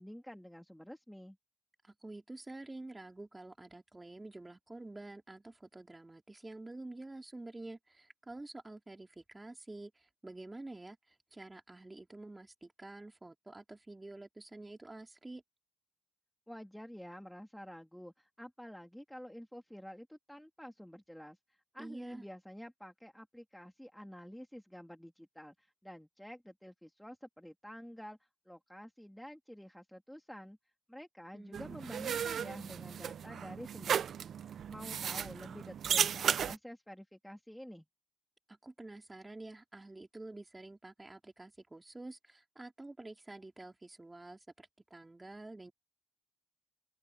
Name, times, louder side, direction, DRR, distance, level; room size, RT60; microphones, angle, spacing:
voice 1, 0.0-1.4 16.5-21.4 21.7-25.5 25.8-28.2 28.5-30.6 30.9-34.3 34.7-37.8, equal, ahead, 2.7 m, -49 dB
voice 2, 1.8-15.4 21.8-22.2 31.3-32.0 38.5-45.7, right 2 dB, 15° right, 3.7 m, -49 dB
sound 1, 31.5-36.6, right 8 dB, 60° right, 0.6 m, -35 dB
open air
cardioid pair, 90°, 0 cm